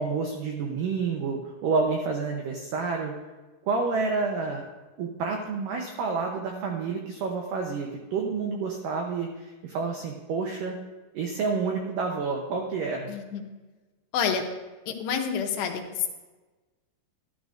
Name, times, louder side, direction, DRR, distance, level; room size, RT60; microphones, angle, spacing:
voice 1, 0.0-3.1 3.7-4.6 5.0-9.3 9.6-10.8 11.1-13.1, right 4 dB, 85° right, 1 dB, 1.9 m, -29 dB
voice 2, 13.1-13.4 14.1-14.4 14.9-16.1, left 7 dB, 80° left, 4 dB, 2.9 m, -28 dB
13.0 x 12.5 x 2.6 m, 1.2 s
omnidirectional pair, 5.1 m